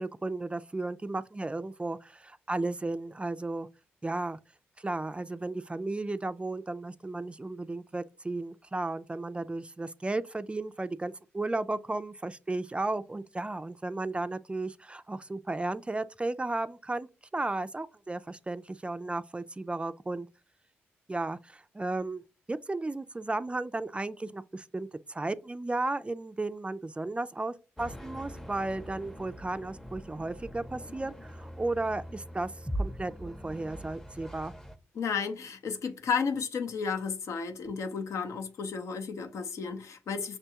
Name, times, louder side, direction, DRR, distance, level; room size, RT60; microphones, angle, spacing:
voice 1, 0.0-3.7 4.0-4.4 4.8-17.1 17.3-20.3 21.1-22.2 22.5-32.5 32.8-34.5, right 2 dB, 20° right, 0.3 m, -34 dB
sound 1, 27.8-34.8, equal, 5° left, 0.7 m, -41 dB
voice 2, 34.9-40.4, left 5 dB, 70° left, 0.6 m, -33 dB
5.9 x 2.2 x 2.8 m
hypercardioid pair, 40°, 5 cm